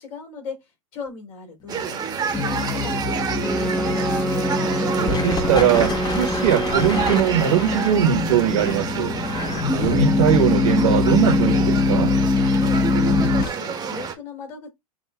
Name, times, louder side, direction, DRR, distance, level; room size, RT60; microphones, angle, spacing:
voice 1, 0.0-4.1 12.4-12.8 13.2-14.7, left 4 dB, 65° left, 2.8 m, -38 dB
sound 1, 1.7-14.1, right 6 dB, 20° right, 1.0 m, -29 dB
sound 2, 2.3-13.5, left 3 dB, 20° left, 0.9 m, -23 dB
sound 3, 3.4-7.6, right 2 dB, 5° left, 0.4 m, -27 dB
voice 2, 4.8-9.1 9.7-12.1, right 9 dB, 65° right, 1.1 m, -20 dB
7.1 x 2.6 x 2.3 m
hypercardioid pair, 105°, 19 cm